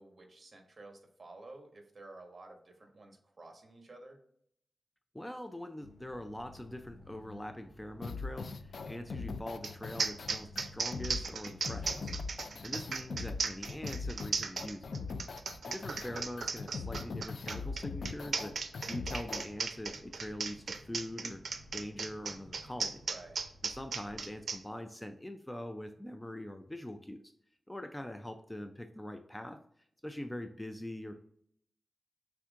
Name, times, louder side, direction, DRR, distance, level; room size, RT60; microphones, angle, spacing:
voice 1, 0.0-4.2 12.5-12.9 23.1-23.4, right 2 dB, 40° right, 3 dB, 1.1 m, -52 dB
voice 2, 5.1-12.1 12.4-14.9 15.6-18.5 18.9-21.4 21.7-23.0 23.6-27.2 27.7-29.6 30.0-31.2, left 1 dB, 10° left, 6 dB, 0.3 m, -43 dB
sound 1, 5.8-24.4, left 1 dB, 65° left, 1.4 m, -56 dB
sound 2, 8.0-19.4, left 4 dB, 80° left, 0.3 m, -40 dB
sound 3, 9.6-9.7 10.0-24.6, right 5 dB, 80° right, 0.4 m, -36 dB
5.8 x 3.5 x 2.4 m, 0.68 s
wide cardioid pair, 95°, 0 cm